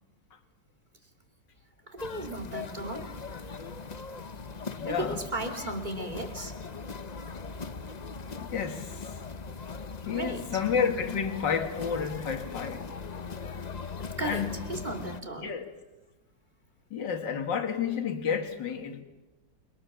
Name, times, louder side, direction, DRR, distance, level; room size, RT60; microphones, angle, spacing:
voice 1, 1.9-3.1 4.9-6.5 10.1-10.4 14.2-15.5, right 2 dB, 25° right, 2.7 m, -35 dB
sound 1, 2.0-15.2, left 5 dB, 40° left, 0.6 m, -40 dB
voice 2, 4.8-5.2 7.3-7.4 8.4-9.2 10.1-12.9 14.2-14.6 15.4-15.6 16.9-19.0, left 7 dB, 75° left, 2.6 m, -30 dB
29.0 x 22.5 x 7.2 m
omnidirectional pair, 2.0 m